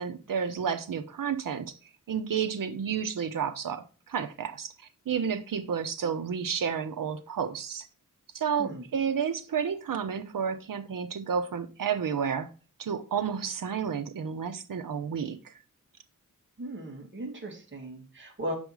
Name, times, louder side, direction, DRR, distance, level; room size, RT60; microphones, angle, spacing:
voice 1, 0.0-1.8 2.1-7.9 8.3-12.5 12.8-15.5, right 7 dB, 90° right, 0.8 m, -31 dB
voice 2, 8.6-8.9 16.6-18.5, right 1 dB, 35° right, 2.1 m, -37 dB
7.2 x 5.3 x 4.7 m
wide cardioid pair, 90°, 32 cm